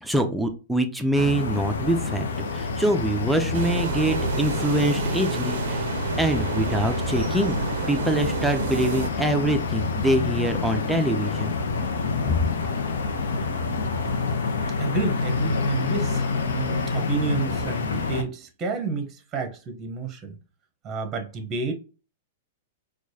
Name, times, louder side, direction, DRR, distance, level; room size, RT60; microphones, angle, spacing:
voice 1, 0.0-2.3 2.5-5.8 6.2-7.6 7.9-11.5 12.3-12.5, equal, 5° right, 0.6 m, -24 dB
sound 1, 1.1-18.2, left 4 dB, 80° left, 0.7 m, -27 dB
sound 2, 3.5-9.1, right 5 dB, 70° right, 0.5 m, -30 dB
voice 2, 14.8-20.4 20.8-21.7, right 5 dB, 25° right, 1.0 m, -30 dB
4.5 x 2.4 x 2.8 m
hypercardioid pair, 125°, 0 cm